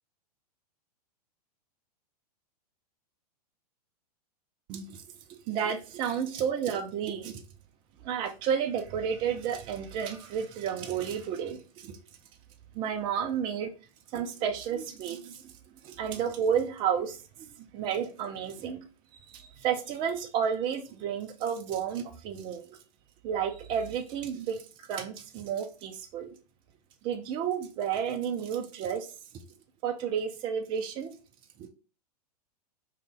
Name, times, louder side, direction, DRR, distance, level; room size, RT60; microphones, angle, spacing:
voice 1, 4.7-5.0 5.5-7.4 8.0-12.0 12.7-13.7 14.1-15.5 15.8-18.8 19.3-22.8 23.2-24.6 24.9-26.3 27.0-29.1 29.8-31.2 31.6-31.7, right 8 dB, 25° right, 0.3 m, -31 dB
2.5 x 2.2 x 3.6 m
figure-of-eight pair, 100°, 20 cm